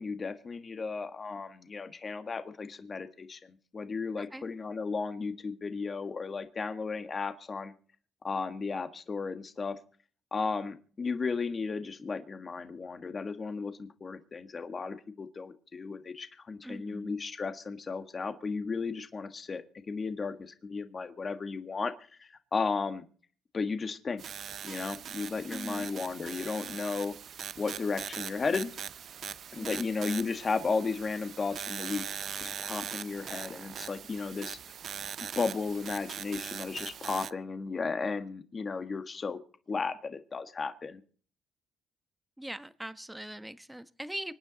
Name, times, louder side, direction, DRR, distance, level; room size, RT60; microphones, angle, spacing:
voice 1, 0.0-3.4 3.7-7.7 8.2-9.7 10.3-21.9 22.2-23.0 23.5-24.2 24.6-27.1 27.6-28.7 29.5-32.0 32.4-34.6 35.3-39.4 39.7-41.0, left 4 dB, 35° left, 8 dB, 1.7 m, -34 dB
voice 2, 16.6-17.2 25.5-25.9 29.6-29.8 42.4-44.3, right 1 dB, 5° right, 12 dB, 1.1 m, -41 dB
sound 1, 24.2-37.3, right 8 dB, 60° right, 0.6 m, -41 dB
25.5 x 9.9 x 4.0 m, 0.43 s
cardioid pair, 90°, 0 cm